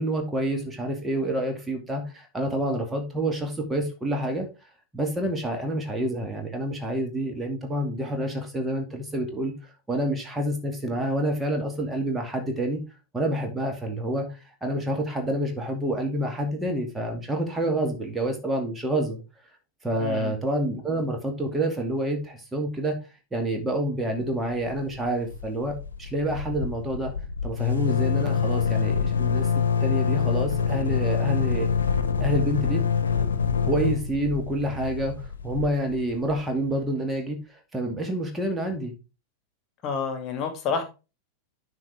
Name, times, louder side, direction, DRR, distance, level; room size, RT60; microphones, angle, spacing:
voice 1, 0.0-4.5 4.9-9.5 9.9-12.8 13.1-19.2 19.8-23.0 23.3-27.1 27.4-31.7 32.2-32.8 33.7-39.0, right 1 dB, 10° right, 2 dB, 2.1 m, -28 dB
voice 2, 20.0-20.3 39.8-40.8, left 5 dB, 35° left, 6 dB, 2.5 m, -29 dB
sound 1, 24.5-25.0 25.3-25.4 25.7-36.4, left 6 dB, 70° left, 1.1 m, -25 dB
11.5 x 4.6 x 3.4 m, 0.29 s
figure-of-eight pair, 90°, 0 cm